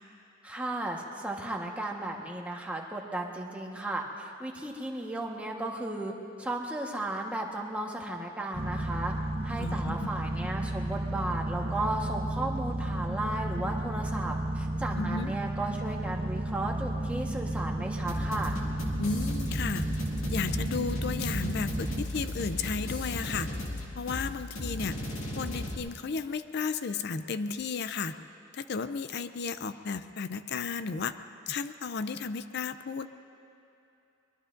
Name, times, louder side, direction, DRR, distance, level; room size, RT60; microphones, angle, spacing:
voice 1, 0.4-6.1 6.4-9.1 9.4-18.5, right 1 dB, 5° right, -1 dB, 1.3 m, -35 dB
sound 1, 8.5-22.0, right 1 dB, 30° right, 0.5 m, -33 dB
voice 2, 9.6-10.1 15.0-15.3 19.0-19.8 20.3-23.5 24.0-24.9 25.4-28.1 28.5-31.2 31.5-33.1, left 5 dB, 55° left, 11 dB, 0.5 m, -33 dB
sound 2, 18.1-25.8, left 1 dB, 90° left, 2.2 m, -36 dB
24.5 x 22.0 x 2.6 m, 2.8 s
head